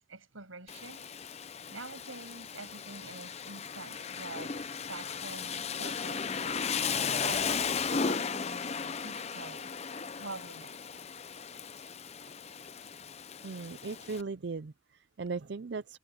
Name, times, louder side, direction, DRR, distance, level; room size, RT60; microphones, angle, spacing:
voice 1, 0.1-1.1 1.7-4.6 4.9-9.7 10.2-10.8, right 3 dB, 85° right, 7.1 m, -46 dB
Rain, 0.7-14.2, left 6 dB, 30° left, 0.6 m, -36 dB
voice 2, 13.4-16.0, right 4 dB, 55° right, 0.5 m, -38 dB
head